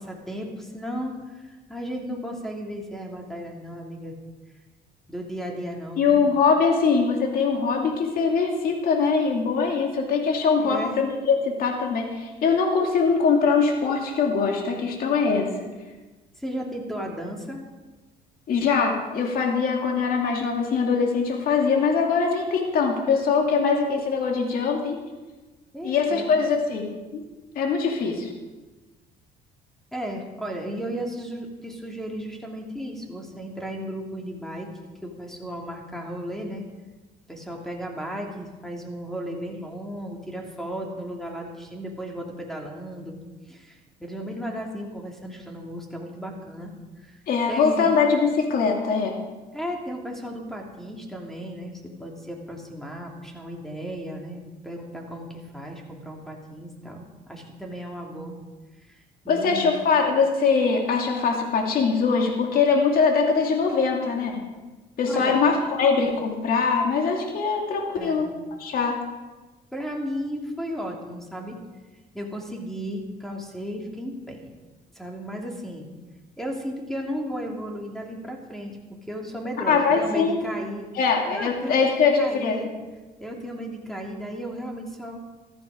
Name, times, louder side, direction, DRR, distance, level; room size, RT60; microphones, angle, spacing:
voice 1, 0.0-4.1 5.1-6.2 10.6-10.9 16.4-17.6 25.7-26.3 29.9-34.7 35.0-36.6 37.3-43.2 43.5-46.7 47.0-47.2 47.5-47.9 49.5-58.3 58.8-59.7 65.1-65.4 68.0-68.3 69.7-71.6 72.1-74.5 74.9-75.9 76.4-80.8 81.2-81.9 82.2-82.7 83.2-85.2, equal, ahead, 1 dB, 3.0 m, -35 dB
voice 2, 6.0-15.5 18.5-25.0 25.8-27.2 27.6-28.3 47.3-49.2 59.3-64.4 65.0-68.3 68.6-69.0 79.7-80.4 80.9-82.7, left 5 dB, 60° left, 1 dB, 2.4 m, -22 dB
14.5 x 13.5 x 5.1 m, 1.2 s
cardioid pair, 110°, 17 cm